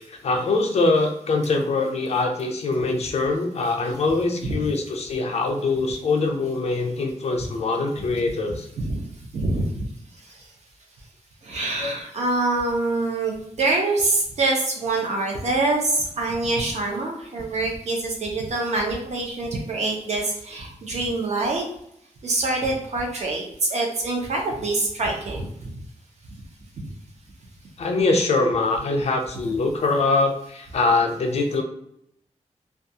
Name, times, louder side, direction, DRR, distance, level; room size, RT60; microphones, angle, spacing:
voice 1, 0.0-8.6 11.8-11.9 27.8-31.6, left 3 dB, 60° left, 3 dB, 0.5 m, -23 dB
voice 2, 9.3-9.9 11.4-21.6 22.2-25.5, right 2 dB, 65° right, 0 dB, 0.6 m, -25 dB
2.3 x 2.3 x 2.7 m, 0.74 s
wide cardioid pair, 175°, 12 cm